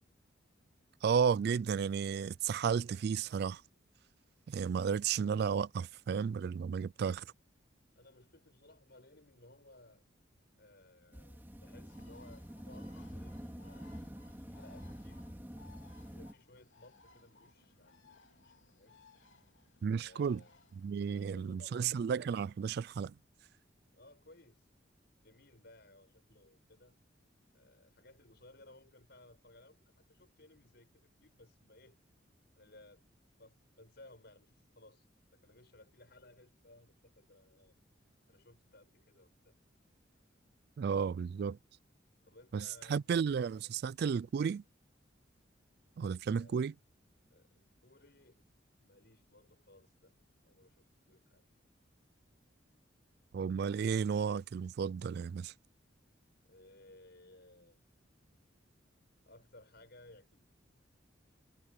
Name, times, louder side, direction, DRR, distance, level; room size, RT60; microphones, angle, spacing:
voice 1, 1.0-3.6 4.5-7.2 19.8-20.4 20.8-23.1 40.8-41.6 42.5-44.6 46.0-46.7 53.3-55.5, right 6 dB, 60° right, 0.3 m, -33 dB
voice 2, 8.0-10.0 10.6-13.9 14.3-15.2 16.1-18.0 18.4-19.0 20.0-20.6 21.1-22.2 23.9-24.7 25.2-27.0 27.5-32.0 32.6-35.1 35.3-37.7 38.3-39.6 42.2-43.7 46.2-46.6 47.3-48.4 48.8-50.2 50.4-51.4 56.5-57.8 59.3-60.5, left 2 dB, 60° left, 6.8 m, -60 dB
sound 1, 11.1-16.3, equal, 10° right, 2.4 m, -47 dB
Bird, 11.8-21.1, left 4 dB, 80° left, 3.8 m, -64 dB
head